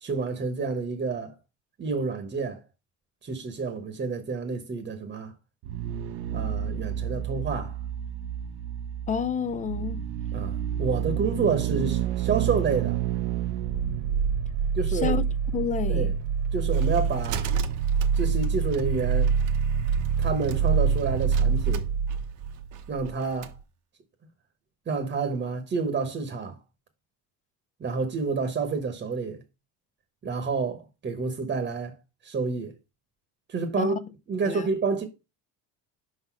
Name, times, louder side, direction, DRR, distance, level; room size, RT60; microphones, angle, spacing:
voice 1, 0.0-1.3 1.8-2.6 3.2-5.3 6.3-7.8 10.3-13.0 14.7-15.2 15.9-16.1 16.5-17.5 18.1-19.3 20.2-21.9 22.9-23.6 24.9-26.6 27.8-29.4 30.2-32.0 32.2-32.7 33.5-34.0 34.3-35.1, right 4 dB, 25° right, 1.1 m, -29 dB
sound 1, 5.6-23.2 23.4-23.5, right 7 dB, 85° right, 0.8 m, -27 dB
voice 2, 9.1-10.0 15.0-15.2 15.5-16.1 33.8-33.9 34.5-34.7, left 6 dB, 20° left, 0.4 m, -29 dB
sound 2, 16.2-23.6, right 9 dB, 50° right, 0.9 m, -43 dB
5.4 x 4.0 x 5.8 m
cardioid pair, 140°, 39 cm